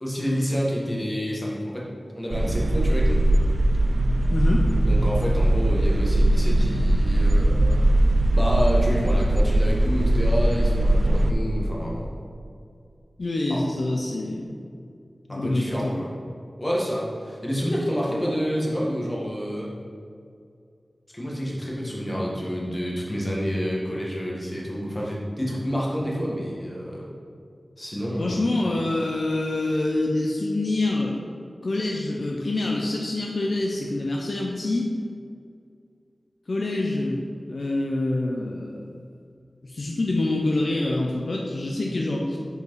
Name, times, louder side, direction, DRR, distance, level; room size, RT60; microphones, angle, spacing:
voice 1, 0.0-3.2 4.9-7.8 8.3-12.1 13.5-13.6 15.3-16.1 16.6-19.7 21.1-27.0 27.8-28.4, equal, 25° left, -4 dB, 1.5 m, -28 dB
sound 1, 2.3-11.3, right 1 dB, 65° right, 0.4 m, -20 dB
voice 2, 4.3-4.7 13.2-14.5 15.3-16.1 28.2-31.2 31.6-34.9 36.5-38.9 39.6-42.4, left 2 dB, 65° left, -1 dB, 0.6 m, -26 dB
5.2 x 4.8 x 4.7 m, 2.4 s
wide cardioid pair, 55°, 0 cm